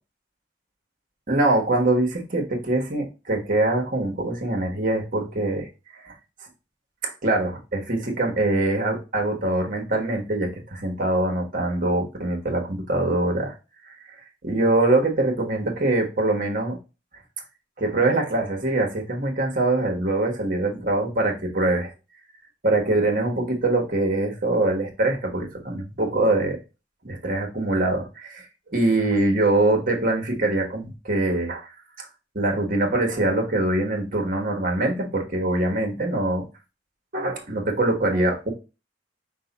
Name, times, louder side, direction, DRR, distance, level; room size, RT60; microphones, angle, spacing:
voice 1, 1.3-6.1 7.0-13.5 14.4-16.8 17.8-21.9 22.6-26.6 27.0-31.7 32.3-36.4 37.1-38.5, right 2 dB, 50° right, 2 dB, 1.2 m, -23 dB
5.4 x 2.2 x 4.0 m, 0.30 s
head